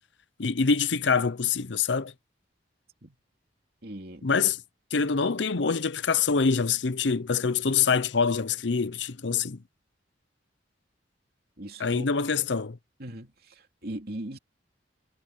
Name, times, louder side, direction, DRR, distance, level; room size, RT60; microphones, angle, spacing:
voice 1, 0.4-2.1 4.2-4.6 4.9-9.6 11.8-12.8, left 5 dB, 75° left, 0.7 m, -25 dB
voice 2, 3.8-4.2 11.6-12.0 13.0-14.4, right 1 dB, 55° right, 3.0 m, -39 dB
head